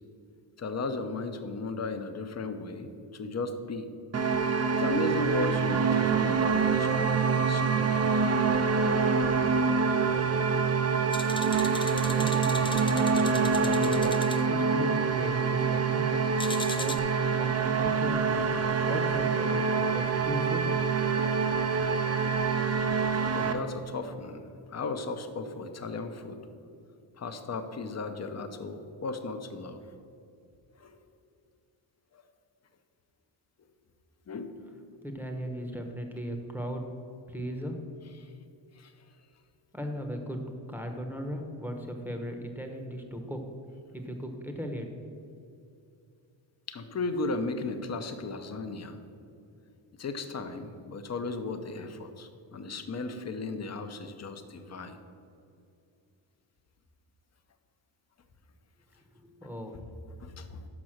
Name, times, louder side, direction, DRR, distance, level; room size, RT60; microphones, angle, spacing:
voice 1, 0.6-3.9 4.8-8.0 23.3-26.5 27.1-29.8 30.8-31.0 32.1-32.2 34.3-34.8 38.2-38.3 38.7-38.9 46.7-49.0 50.0-55.0 60.2-60.7, left 3 dB, 35° left, 7 dB, 0.7 m, -36 dB
sound 1, 4.1-23.5, right 5 dB, 35° right, 0.6 m, -26 dB
sound 2, 11.1-14.4 16.4-17.0, left 3 dB, 10° left, 0.3 m, -38 dB
voice 2, 12.1-16.2 16.6-17.0 17.4-18.5 18.8-20.7 35.0-36.8 37.3-37.8 39.7-40.4 40.7-43.4 43.9-44.9 59.1-59.8, equal, 5° right, 4 dB, 0.9 m, -37 dB
6.0 x 5.3 x 6.4 m, 2.6 s
cardioid pair, 80°, 48 cm